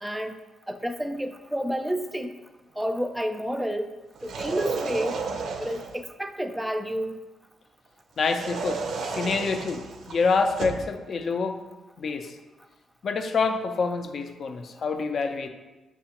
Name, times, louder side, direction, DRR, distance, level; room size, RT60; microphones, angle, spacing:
voice 1, 0.0-0.3 0.7-2.3 2.8-3.9 4.2-5.2 5.6-7.2, equal, 5° right, 7 dB, 0.4 m, -30 dB
sound 1, 4.1-6.0 8.2-10.9, right 4 dB, 75° right, 0.4 m, -33 dB
voice 2, 8.2-11.6 12.0-12.4 13.0-15.5, left 4 dB, 60° left, 6 dB, 0.4 m, -27 dB
7.0 x 2.4 x 2.9 m, 1.1 s
cardioid pair, 75°, 0 cm